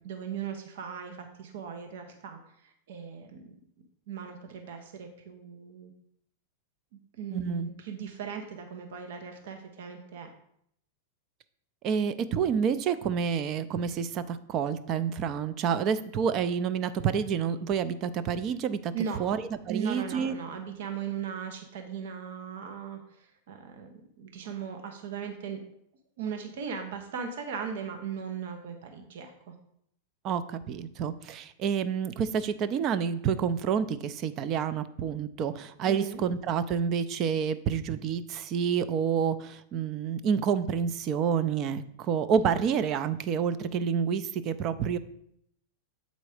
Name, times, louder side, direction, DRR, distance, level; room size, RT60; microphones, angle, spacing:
voice 1, 0.0-3.4 4.1-5.9 7.1-10.3 18.9-19.3 19.7-23.9 24.2-25.6 26.2-29.5 35.8-36.2, right 7 dB, 70° right, 5 dB, 0.9 m, -38 dB
voice 2, 7.3-7.7 11.8-18.9 19.2-20.3 30.2-45.0, right 7 dB, 40° right, 13 dB, 0.5 m, -28 dB
7.9 x 4.0 x 4.9 m, 0.72 s
hypercardioid pair, 130°, 0 cm